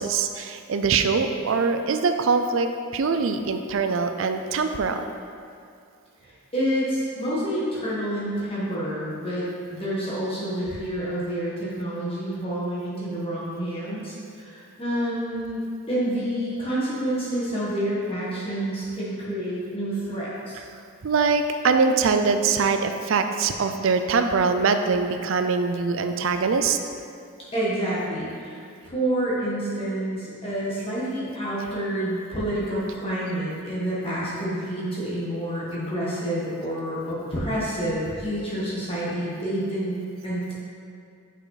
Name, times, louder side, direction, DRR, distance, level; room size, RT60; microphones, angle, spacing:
voice 1, 0.0-5.0 21.0-26.8, right 4 dB, 60° right, 7 dB, 0.4 m, -23 dB
voice 2, 6.2-20.6 27.5-28.6 28.9-39.9 40.2-40.5, right 1 dB, 25° left, -8 dB, 1.4 m, -28 dB
6.3 x 5.5 x 4.1 m, 2.4 s
head